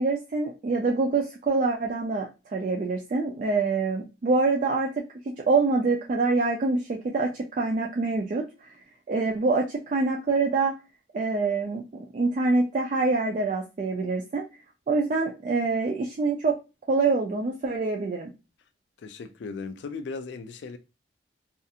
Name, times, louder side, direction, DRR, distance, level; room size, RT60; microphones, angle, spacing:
voice 1, 0.0-4.9 5.2-8.8 9.1-10.8 11.1-11.9 12.1-14.4 14.9-16.6 16.9-18.3, right 3 dB, 40° right, 0.3 m, -25 dB
voice 2, 19.0-20.8, left 4 dB, 70° left, 0.3 m, -37 dB
2.4 x 2.4 x 2.7 m
head